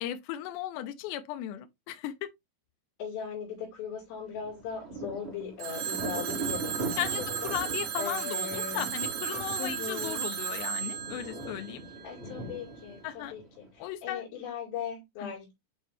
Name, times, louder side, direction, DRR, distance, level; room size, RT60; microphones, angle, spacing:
voice 1, 0.0-2.3 7.0-11.8 13.0-13.3 13.8-14.2 15.2-15.3, left 13 dB, 75° left, 2.7 m, -36 dB
voice 2, 3.0-7.5 8.0-8.9 9.6-10.2 12.0-15.5, left 7 dB, 60° left, 4.6 m, -39 dB
Thunder, 4.3-13.8, right 2 dB, 35° right, 0.9 m, -40 dB
Telephone, 5.6-12.4, right 9 dB, 70° right, 2.9 m, -35 dB
8.8 x 3.4 x 3.2 m
omnidirectional pair, 5.8 m